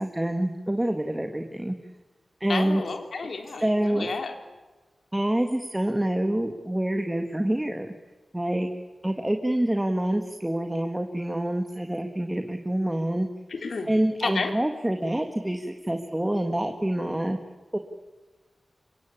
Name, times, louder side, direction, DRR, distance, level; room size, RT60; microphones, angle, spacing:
voice 1, 0.0-1.8 2.4-2.8 3.6-4.1 5.1-7.9 8.3-8.7 9.0-13.3 13.9-17.4 17.7-17.8, right 1 dB, 10° right, 6 dB, 1.8 m, -26 dB
voice 2, 2.5-4.3 13.5-13.9 14.2-14.5, left 4 dB, 80° left, 5 dB, 3.9 m, -31 dB
26.5 x 24.0 x 8.7 m, 1.3 s
wide cardioid pair, 110°, 0 cm